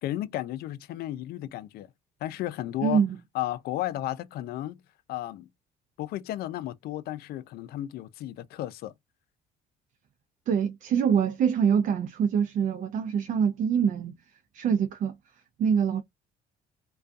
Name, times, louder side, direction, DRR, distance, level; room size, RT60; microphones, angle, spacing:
voice 1, 0.0-1.9 2.2-3.0 3.3-4.8 5.1-5.5 6.0-8.9, left 14 dB, 65° left, 0.4 m, -33 dB
voice 2, 2.8-3.2 10.5-14.1 14.5-15.1 15.6-16.0, right 7 dB, 50° right, 0.5 m, -24 dB
2.5 x 2.3 x 2.3 m
cardioid pair, 110°, 17 cm